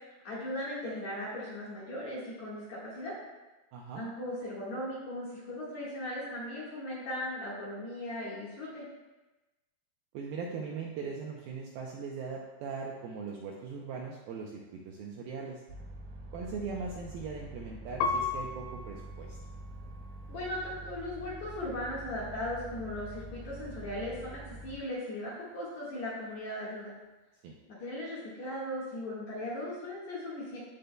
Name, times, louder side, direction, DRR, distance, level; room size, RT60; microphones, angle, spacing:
voice 1, 0.2-3.1 3.9-8.8 20.3-26.9 27.7-30.6, left 1 dB, 55° left, -7 dB, 2.4 m, -38 dB
voice 2, 3.7-4.1 10.1-15.6 16.3-19.4 27.4-27.5, right 5 dB, 80° right, -1 dB, 2.2 m, -40 dB
sound 1, 15.7-24.8, right 2 dB, 65° right, 2.9 m, -46 dB
Piano, 18.0-20.8 21.4-22.1, left 4 dB, 85° left, 2.5 m, -37 dB
15.5 x 5.3 x 2.2 m, 1.1 s
omnidirectional pair, 5.0 m